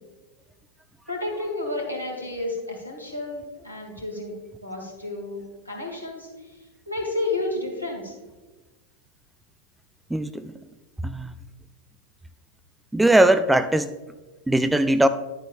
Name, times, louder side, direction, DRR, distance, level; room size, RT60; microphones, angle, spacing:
voice 1, 1.1-4.3 4.6-6.3 6.9-8.1, left 2 dB, 90° right, -1 dB, 2.3 m, -31 dB
voice 2, 10.1-10.5 11.0-11.3 12.9-13.9 14.5-15.1, right 1 dB, 5° right, 12 dB, 0.3 m, -19 dB
11.0 x 8.0 x 2.4 m, 1.2 s
figure-of-eight pair, 90°, 0 cm